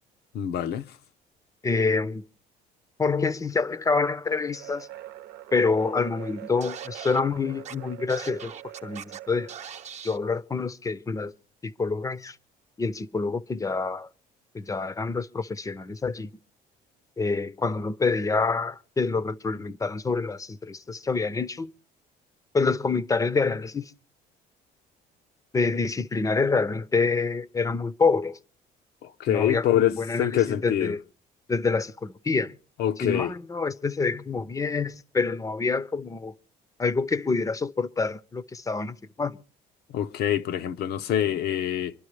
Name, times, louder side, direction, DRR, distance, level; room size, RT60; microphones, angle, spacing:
voice 1, 0.3-0.9 29.0-31.0 32.8-33.3 39.9-41.9, left 11 dB, 70° left, 0.8 m, -25 dB
voice 2, 1.6-2.2 3.0-4.9 5.5-8.5 8.8-9.5 10.0-11.3 11.6-12.4 12.8-14.1 14.5-16.3 17.2-21.7 22.5-23.9 25.5-28.4 29.3-31.0 31.5-32.6 33.0-36.3 36.8-39.4, left 4 dB, 20° left, 0.6 m, -27 dB
sound 1, 4.5-10.0, right 14 dB, 80° right, 0.8 m, -44 dB
Scratching (performance technique), 6.6-7.2 7.7-7.8 8.1-9.2 9.5-10.2, right 8 dB, 40° right, 0.8 m, -40 dB
25.5 x 11.5 x 3.2 m
cardioid pair, 110°, 17 cm